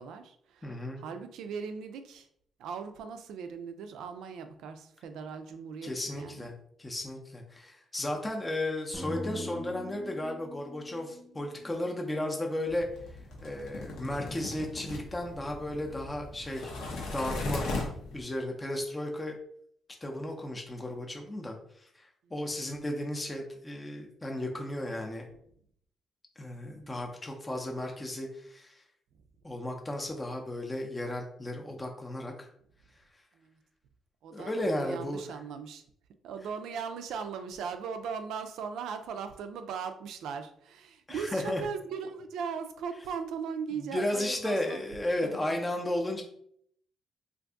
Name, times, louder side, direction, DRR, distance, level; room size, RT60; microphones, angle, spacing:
voice 1, 0.0-2.3 2.6-6.5 22.2-22.3 26.6-26.9 32.2-32.4 33.4-33.6 34.2-35.8 36.2-44.8 45.2-45.6, right 6 dB, 80° right, 8 dB, 0.4 m, -39 dB
voice 2, 0.6-1.0 5.8-6.5 6.8-17.7 18.1-19.4 20.0-25.3 26.4-28.8 29.4-32.5 34.3-35.4 41.1-41.6 43.8-46.2, left 1 dB, 20° left, 1 dB, 0.5 m, -34 dB
sound 1, 8.9-13.1, left 1 dB, 25° right, 0.6 m, -43 dB
sound 2, 12.7-18.2, left 2 dB, 80° left, 0.8 m, -38 dB
2.6 x 2.5 x 3.4 m, 0.67 s
cardioid pair, 90°, 0 cm